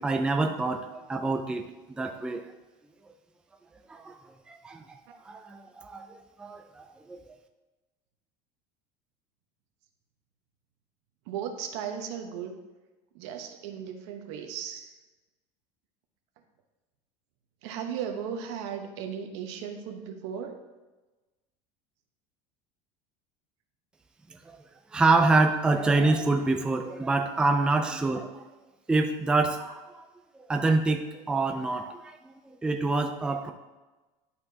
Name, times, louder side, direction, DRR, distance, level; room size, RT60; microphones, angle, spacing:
voice 1, 0.0-1.6 2.0-2.4 3.9-4.2 4.5-4.8 5.3-6.1 6.4-7.2 24.9-28.4 28.9-29.8 30.3-32.0 32.6-33.5, right 3 dB, 5° right, 4 dB, 0.4 m, -26 dB
voice 2, 11.3-12.5 13.1-14.9 17.6-20.6, right 8 dB, 75° right, 4 dB, 1.0 m, -36 dB
11.0 x 4.3 x 2.8 m, 1.2 s
cardioid pair, 145°, 15 cm